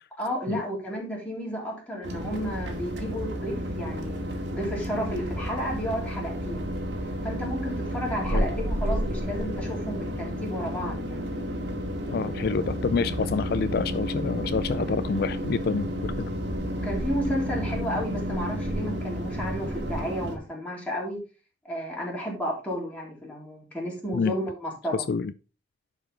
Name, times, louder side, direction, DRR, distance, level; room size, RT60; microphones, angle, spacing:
voice 1, 0.2-4.2 4.5-6.7 7.2-11.2 16.7-21.2 21.6-25.0, equal, 10° left, 3.6 m, -32 dB
sound 1, 2.0-20.4, equal, 90° right, 2.1 m, -31 dB
voice 2, 12.1-16.1 24.1-24.3 25.1-25.3, left 5 dB, 60° left, 0.4 m, -27 dB
11.0 x 5.1 x 3.7 m
head